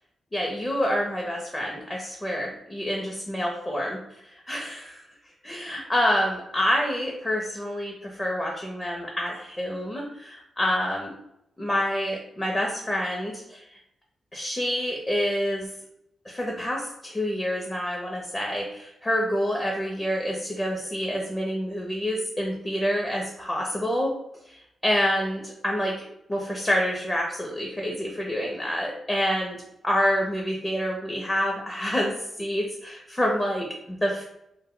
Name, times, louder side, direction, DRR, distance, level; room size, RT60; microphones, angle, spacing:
voice 1, 0.3-4.0 4.2-5.0 5.4-11.1 11.6-13.6 14.3-15.7 16.3-24.1 24.4-26.0 26.3-29.6 29.8-34.2, equal, 15° left, -1 dB, 0.5 m, -27 dB
2.1 x 2.0 x 3.6 m, 0.81 s
cardioid pair, 75°, 0 cm